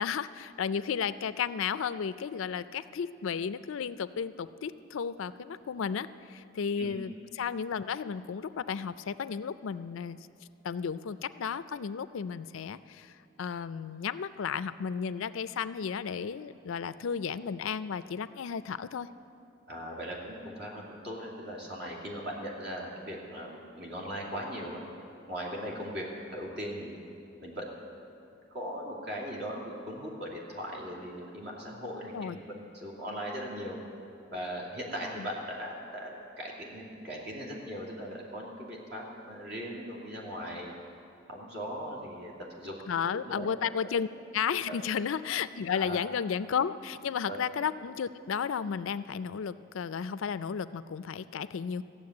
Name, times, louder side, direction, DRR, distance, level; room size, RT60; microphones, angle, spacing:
voice 1, 0.0-10.2 10.6-19.1 32.1-32.4 35.2-35.3 42.9-44.1 44.3-51.8, left 7 dB, 80° left, 14 dB, 0.4 m, -33 dB
voice 2, 19.7-24.8 25.3-26.0 26.3-27.0 27.4-27.6 28.5-32.4 32.7-33.8 34.3-40.7 41.3-42.7 43.1-43.5 44.7-44.9 45.7-46.0 47.3-47.4, equal, 55° right, -2 dB, 2.6 m, -39 dB
14.5 x 7.2 x 9.5 m, 2.6 s
head